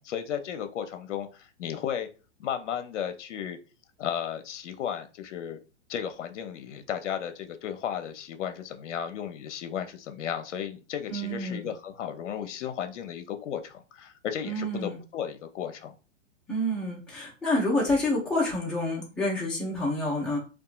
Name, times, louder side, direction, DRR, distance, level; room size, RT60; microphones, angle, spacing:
voice 1, 0.0-2.1 2.4-3.6 4.0-5.6 5.9-15.9, left 9 dB, 70° left, 0.6 m, -34 dB
voice 2, 11.1-11.7 14.4-15.0 16.5-20.4, left 1 dB, ahead, 0.3 m, -28 dB
2.7 x 2.3 x 2.4 m
hypercardioid pair, 125°, 37 cm